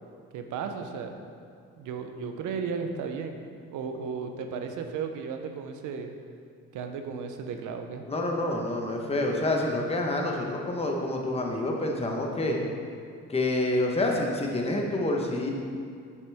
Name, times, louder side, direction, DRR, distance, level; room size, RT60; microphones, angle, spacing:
voice 1, 0.3-1.2 1.8-3.4 3.7-6.1 6.7-8.0, right 5 dB, 85° right, 5 dB, 0.8 m, -34 dB
voice 2, 8.1-12.6 13.3-15.5, left 2 dB, 20° left, 0 dB, 1.2 m, -27 dB
7.9 x 7.3 x 3.5 m, 2.3 s
cardioid pair, 90°, 30 cm